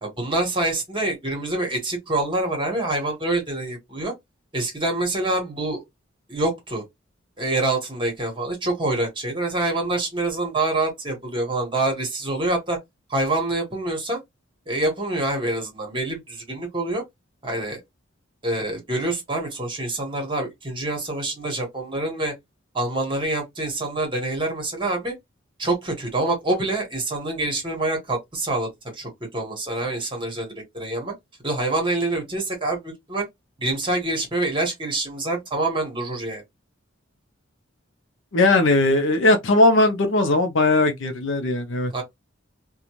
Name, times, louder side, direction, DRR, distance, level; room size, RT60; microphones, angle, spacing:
voice 1, 0.0-4.1 4.5-5.8 6.3-6.8 7.4-12.8 13.1-14.2 14.7-17.0 17.4-17.8 18.4-22.3 22.7-25.1 25.6-31.1 31.4-33.3 33.6-36.4 41.9-42.0, right 2 dB, 25° right, 1.3 m, -26 dB
voice 2, 38.3-42.0, left 2 dB, 65° left, 0.6 m, -19 dB
2.5 x 2.3 x 3.0 m
head